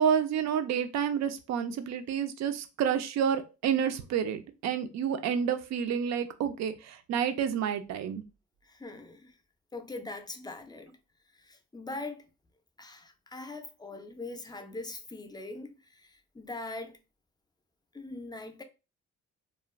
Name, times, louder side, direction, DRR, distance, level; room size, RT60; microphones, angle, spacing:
voice 1, 0.0-8.2, right 8 dB, 60° right, 0.5 m, -29 dB
voice 2, 8.6-9.3 9.7-11.0 11.3-12.3 12.8-17.0 17.9-18.6, left 2 dB, 15° left, 0.5 m, -42 dB
2.4 x 2.1 x 3.1 m
cardioid pair, 90°, 30 cm